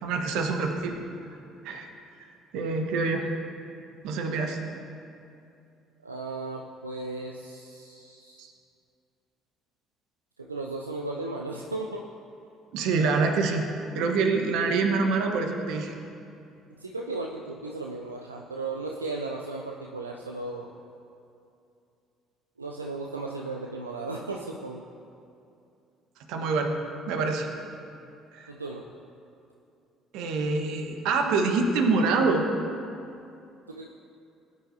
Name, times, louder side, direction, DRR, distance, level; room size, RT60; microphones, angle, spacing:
voice 1, 0.0-1.0 1.6-1.9 2.5-3.3 4.0-4.6 8.4-8.5 12.7-13.7 13.9-16.0 26.3-26.7 27.1-27.5 28.3-28.5 30.1-32.5, right 4 dB, 60° right, 4 dB, 1.1 m, -25 dB
voice 2, 6.0-8.5 10.4-12.1 16.8-20.7 22.6-24.9 27.1-27.3 28.5-28.9 33.7-33.9, right 2 dB, 85° right, 0 dB, 0.4 m, -35 dB
18.5 x 9.5 x 2.7 m, 2.6 s
figure-of-eight pair, 50°, 0 cm